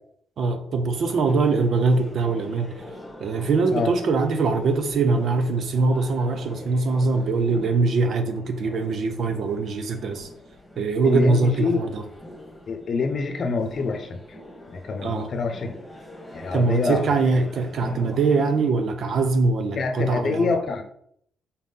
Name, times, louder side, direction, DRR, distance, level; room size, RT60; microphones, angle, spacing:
voice 1, 0.4-2.7 3.2-10.3 10.8-12.0 15.0-15.3 16.5-20.5, right 3 dB, 55° right, 8 dB, 0.7 m, -22 dB
sound 1, 0.9-18.7, left 1 dB, ahead, 1.9 m, -43 dB
voice 2, 11.0-11.8 12.7-14.2 14.7-15.7 16.3-17.0 19.8-20.8, left 4 dB, 45° left, 6 dB, 0.8 m, -26 dB
5.5 x 4.2 x 4.0 m, 0.69 s
cardioid pair, 140°, 0 cm